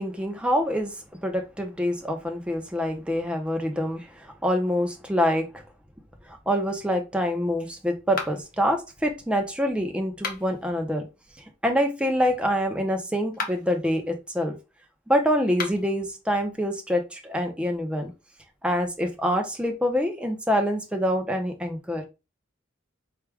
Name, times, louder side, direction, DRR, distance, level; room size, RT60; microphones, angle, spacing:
voice 1, 0.0-5.6 6.3-11.1 11.6-14.5 15.1-18.1 18.6-22.0, equal, 5° right, 0.7 m, -26 dB
sound 1, 8.1-8.6 10.1-10.7 13.2-13.8 15.5-16.0, left 4 dB, 45° left, 0.8 m, -34 dB
4.7 x 2.4 x 3.4 m
head